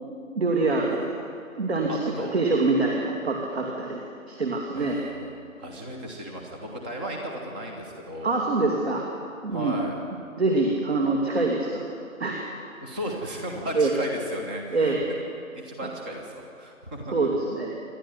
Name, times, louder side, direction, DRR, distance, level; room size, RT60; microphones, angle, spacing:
voice 1, 0.3-1.1 1.6-5.0 8.2-9.0 9.4-9.8 10.4-11.8 12.2-12.4 13.7-13.9 14.7-15.0 15.8-15.9 17.1-17.7, right 3 dB, 50° right, 0 dB, 2.9 m, -25 dB
voice 2, 1.9-2.4 4.7-8.4 9.5-9.9 12.8-15.2 15.5-17.3, equal, 5° right, 1 dB, 0.9 m, -35 dB
27.5 x 12.0 x 9.8 m, 2.4 s
figure-of-eight pair, 150°, 42 cm